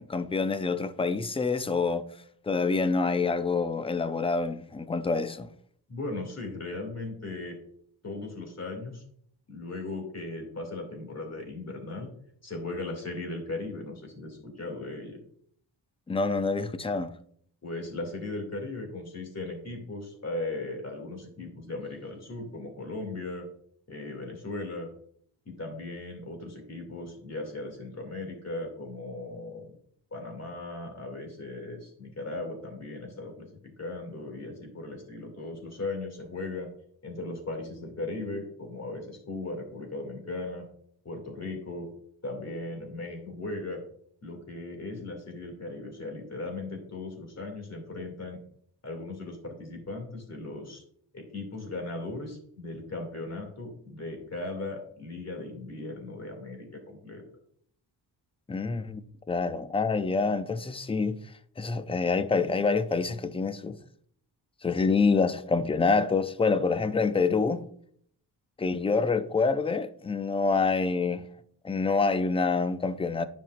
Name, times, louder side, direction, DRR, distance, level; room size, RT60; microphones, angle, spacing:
voice 1, 0.0-2.0 2.4-5.5 16.1-17.1 58.5-59.0 59.3-61.2 61.6-63.8 64.6-67.6 68.6-71.2 71.6-73.3, left 4 dB, 15° left, 0.4 m, -26 dB
voice 2, 5.9-7.6 8.0-9.0 9.5-12.1 12.4-15.2 17.6-23.5 23.9-24.9 25.5-29.7 30.1-36.7 37.0-40.7 41.0-41.9 42.2-43.8 44.2-48.4 48.8-50.8 51.1-57.2, left 2 dB, 35° left, 2.5 m, -37 dB
10.0 x 5.4 x 2.5 m
cardioid pair, 90°, 46 cm